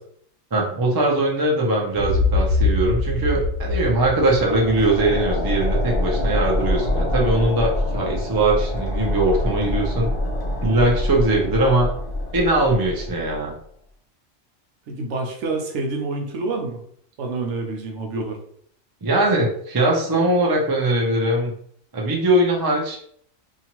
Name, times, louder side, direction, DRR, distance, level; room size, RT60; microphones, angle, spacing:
voice 1, 0.5-10.1 10.6-11.9 12.3-13.6 19.0-21.5 21.9-23.0, right 2 dB, 30° right, -1 dB, 0.4 m, -21 dB
sound 1, 1.9-5.8, left 3 dB, 80° left, 1.0 m, -24 dB
sound 2, 4.3-13.5, left 1 dB, 50° left, 0.7 m, -25 dB
voice 2, 14.9-16.8 17.2-18.4, right 3 dB, 70° right, 2 dB, 0.9 m, -27 dB
2.8 x 2.4 x 2.9 m, 0.64 s
omnidirectional pair, 1.3 m